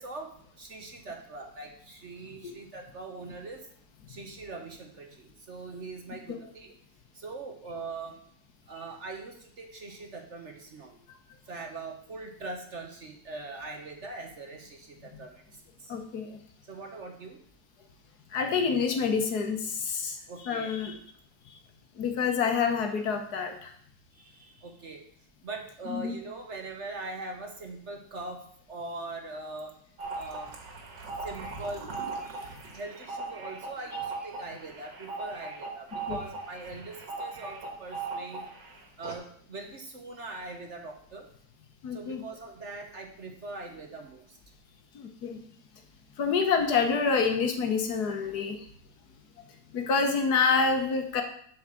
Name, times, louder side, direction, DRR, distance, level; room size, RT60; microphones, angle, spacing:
voice 1, 0.0-3.6 4.1-6.7 7.1-8.2 8.7-11.0 11.5-15.9 16.7-17.4 20.3-20.8 24.1-25.0 25.4-28.4 28.7-29.8 30.1-30.6 31.2-31.9 32.2-38.5 39.0-41.3 41.9-44.4, right 3 dB, 45° right, 3 dB, 1.2 m, -42 dB
voice 2, 15.9-16.4 18.3-20.2 20.4-21.0 21.5-21.6 22.0-23.7 25.9-26.1 36.1-36.2 41.8-42.2 44.9-45.4 46.2-48.6 49.7-51.2, left 5 dB, 65° left, 5 dB, 1.6 m, -27 dB
sound 1, 30.0-38.7 39.0-39.1, right 4 dB, 80° right, 2.3 m, -38 dB
7.9 x 4.9 x 7.4 m, 0.62 s
omnidirectional pair, 1.9 m